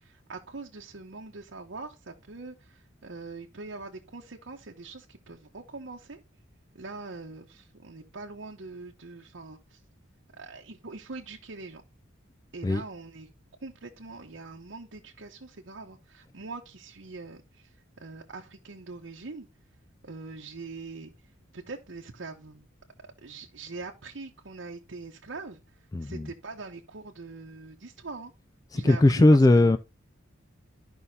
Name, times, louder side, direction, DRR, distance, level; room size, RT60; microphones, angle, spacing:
voice 1, 0.0-6.2 6.7-9.8 10.4-11.8 12.5-13.3 13.6-19.5 20.0-22.7 23.2-28.3 28.7-29.2 29.5-29.7, right 3 dB, 65° right, 1.0 m, -43 dB
voice 2, 25.9-26.3 28.7-29.8, left 2 dB, 20° left, 0.3 m, -19 dB
13.0 x 5.5 x 2.8 m
head